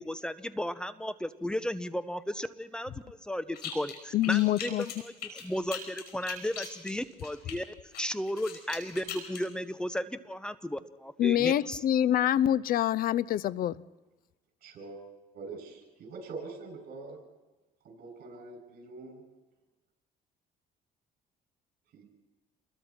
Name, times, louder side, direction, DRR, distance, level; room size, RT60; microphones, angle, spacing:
voice 1, 0.0-7.6 8.0-11.8, equal, 5° left, 13 dB, 0.9 m, -35 dB
sound 1, 3.5-4.0 4.2-7.5 7.9-9.4, left 8 dB, 75° left, 5.2 m, -40 dB
voice 2, 4.1-4.9 11.2-13.8, left 11 dB, 60° left, 19 dB, 0.6 m, -26 dB
voice 3, 14.6-15.0 15.3-17.2 17.8-19.2 21.9-22.0, right 3 dB, 65° right, 2 dB, 7.0 m, -44 dB
28.5 x 21.5 x 4.4 m, 1.1 s
cardioid pair, 110°, 17 cm